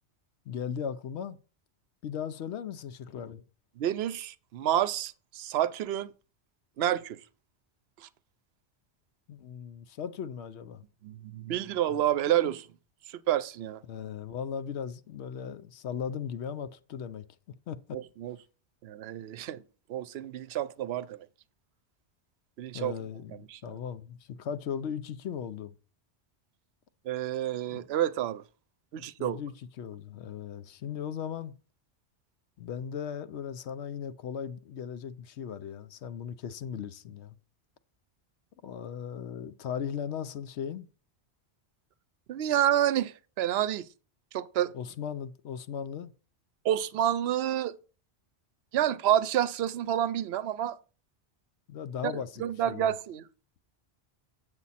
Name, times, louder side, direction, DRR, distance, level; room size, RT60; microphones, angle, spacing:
voice 1, 0.5-1.4 2.0-3.4 9.3-10.8 13.9-17.2 17.7-18.0 22.7-25.7 27.7-27.8 29.0-31.5 32.6-37.4 38.6-40.9 44.7-46.1 51.7-52.9, left 8 dB, 75° left, 0.9 m, -37 dB
voice 2, 3.8-6.1 6.8-7.2 8.0-8.1 11.0-12.7 13.1-13.8 17.9-18.4 18.8-19.6 19.9-21.2 22.6-22.9 23.3-23.6 27.0-28.4 28.9-29.4 42.3-43.9 44.3-44.7 46.6-47.8 48.7-50.8 52.0-52.1 52.4-53.3, right 11 dB, 70° right, 0.8 m, -29 dB
8.3 x 7.0 x 4.1 m
omnidirectional pair, 1.1 m